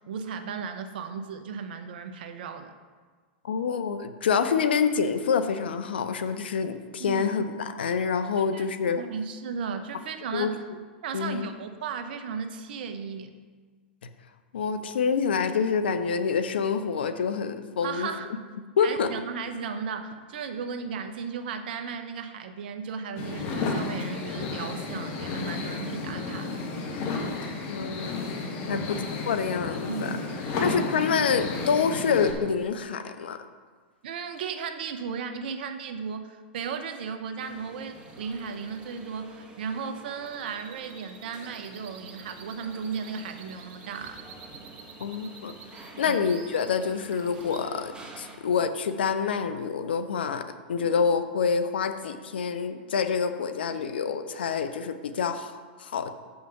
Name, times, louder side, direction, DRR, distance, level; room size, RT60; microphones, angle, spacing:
voice 1, 0.1-2.7 7.0-7.2 8.5-8.6 8.9-10.6 11.0-13.3 17.8-18.3 18.8-26.7 28.6-28.9 29.9-30.8 34.0-44.2 46.0-46.2 53.7-53.8, right 6 dB, 65° right, 8 dB, 0.9 m, -35 dB
voice 2, 3.4-9.0 10.3-10.5 11.1-11.5 14.5-18.1 18.8-19.1 27.7-28.3 28.7-29.0 29.3-30.1 30.6-33.4 45.0-45.5 46.0-50.4 50.7-56.1, left 6 dB, 75° left, 9 dB, 0.7 m, -27 dB
sound 1, 23.2-32.3, left 3 dB, 45° left, 1.6 m, -32 dB
sound 2, 37.4-48.4, right 2 dB, 15° right, 1.6 m, -49 dB
sound 3, 37.9-47.6, right 5 dB, 40° right, 1.4 m, -50 dB
7.7 x 5.7 x 5.7 m, 1.5 s
hypercardioid pair, 110°, 6 cm